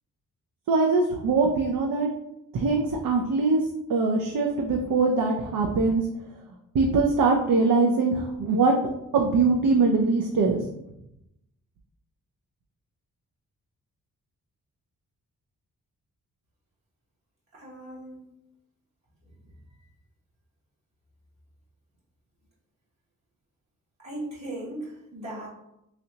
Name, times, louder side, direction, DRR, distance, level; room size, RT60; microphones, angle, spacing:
voice 1, 0.7-2.1 2.5-3.6 3.9-6.1 6.7-8.7 9.1-10.6, right 3 dB, 65° right, 2 dB, 0.5 m, -22 dB
voice 2, 17.5-18.3 19.3-19.4 24.0-25.5, right 1 dB, 45° right, -6 dB, 1.0 m, -38 dB
3.2 x 2.7 x 2.8 m, 0.85 s
cardioid pair, 60°, 37 cm